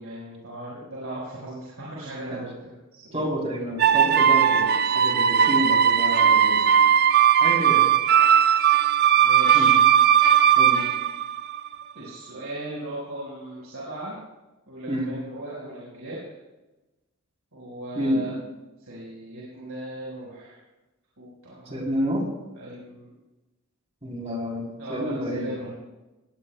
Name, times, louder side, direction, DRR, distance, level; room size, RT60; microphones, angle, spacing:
voice 1, 0.0-3.2 9.2-9.7 11.9-14.2 14.7-16.2 17.5-18.3 18.9-20.6 21.2-21.8 22.6-23.1 24.8-25.7, right 1 dB, 85° right, -6 dB, 4.8 m, -37 dB
voice 2, 3.1-6.6 7.4-7.8 9.5-9.8 10.6-10.8 14.9-15.1 18.0-18.3 21.7-22.3 24.0-25.5, equal, 30° right, 0 dB, 3.5 m, -29 dB
sound 1, 3.8-11.7, right 9 dB, 45° right, 0.5 m, -18 dB
19.5 x 18.5 x 2.3 m, 1.1 s
head